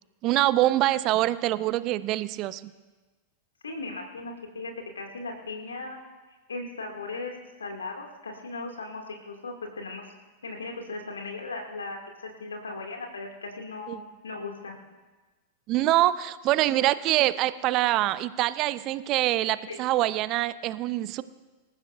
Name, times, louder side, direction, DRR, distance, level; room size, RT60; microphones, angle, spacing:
voice 1, 0.2-2.7 13.9-14.0 15.7-21.2, right 15 dB, 40° right, 16 dB, 0.6 m, -25 dB
voice 2, 3.6-6.0 6.5-7.3 7.6-10.0 10.4-12.0 12.4-14.0 14.2-14.7 19.7-19.8, left 3 dB, 70° left, 2 dB, 2.5 m, -37 dB
26.0 x 14.5 x 2.7 m, 1.2 s
figure-of-eight pair, 90°, 0 cm